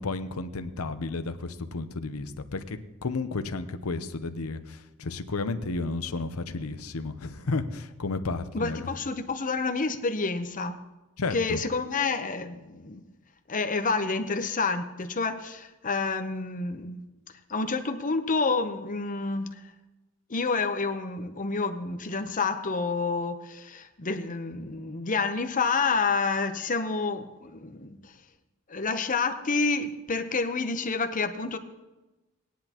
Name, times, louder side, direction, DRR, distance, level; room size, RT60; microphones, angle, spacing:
voice 1, 0.0-8.9 11.2-11.6, left 3 dB, 70° left, 0.7 m, -32 dB
voice 2, 8.5-10.8 11.3-13.0 13.5-17.0 17.5-19.5 20.3-28.0 28.7-31.6, left 4 dB, 35° left, 0.8 m, -29 dB
17.5 x 10.0 x 3.0 m
head